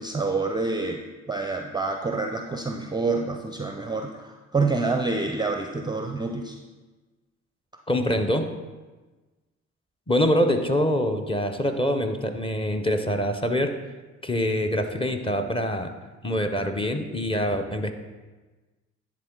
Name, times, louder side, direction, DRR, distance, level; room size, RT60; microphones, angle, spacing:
voice 1, 0.0-6.6, right 3 dB, 10° right, 4 dB, 0.5 m, -27 dB
voice 2, 7.9-8.5 10.1-13.7 14.2-15.9 16.2-17.9, equal, 15° left, 5 dB, 0.8 m, -24 dB
10.0 x 3.9 x 3.8 m, 1.2 s
hypercardioid pair, 60°, 34 cm